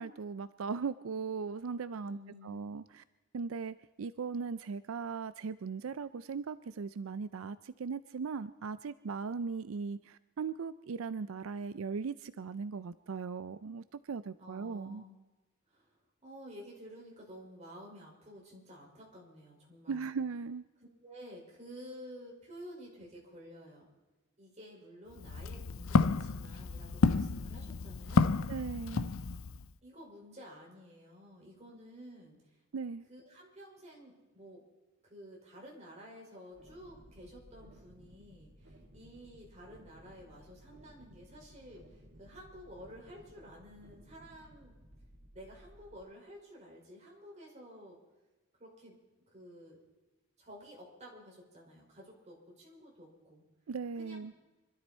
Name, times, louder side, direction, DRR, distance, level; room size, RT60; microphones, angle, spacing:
voice 1, 0.0-2.2 2.4-3.0 3.3-15.0 19.9-20.6 28.5-29.1 32.7-33.0 53.7-54.3, right 5 dB, 85° right, 15 dB, 0.5 m, -38 dB
voice 2, 2.0-2.6 14.4-15.2 15.7-20.1 21.0-23.9 24.4-28.4 29.8-32.6 33.1-34.6 35.0-44.7 45.3-48.0 48.6-49.0 49.3-49.8 50.4-53.4 53.9-54.3, equal, 35° right, -3 dB, 5.3 m, -52 dB
Walk footsteps, 25.1-29.6, left 4 dB, 80° left, 0.5 m, -30 dB
sound 1, 36.5-46.0, equal, 65° right, 2.2 m, -58 dB
25.5 x 13.0 x 4.3 m, 1.1 s
head